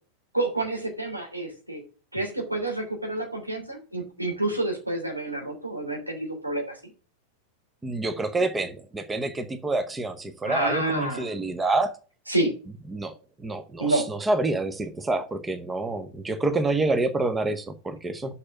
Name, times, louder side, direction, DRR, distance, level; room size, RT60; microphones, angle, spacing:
voice 1, 0.3-1.8 2.1-6.8 10.4-11.3 12.3-12.5 13.8-14.1, right 2 dB, 90° right, 3.1 m, -28 dB
voice 2, 7.8-11.9 12.9-13.1 13.4-18.3, right 2 dB, 10° right, 0.9 m, -27 dB
6.6 x 5.7 x 7.3 m
figure-of-eight pair, 90°, 0 cm